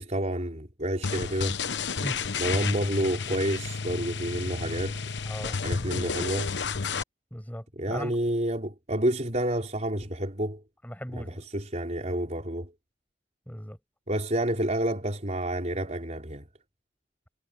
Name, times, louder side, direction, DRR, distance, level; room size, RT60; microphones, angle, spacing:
voice 1, 0.0-1.6 2.4-5.0 5.6-6.5 7.8-10.6 11.1-12.7 14.1-16.5, right 1 dB, 40° right, 4.3 m, -29 dB
sound 1, 1.0-7.0, left 5 dB, 80° left, 1.0 m, -31 dB
voice 2, 2.0-2.3 5.2-5.6 7.3-8.1 10.8-11.4 13.5-13.8, equal, 10° left, 6.3 m, -38 dB
head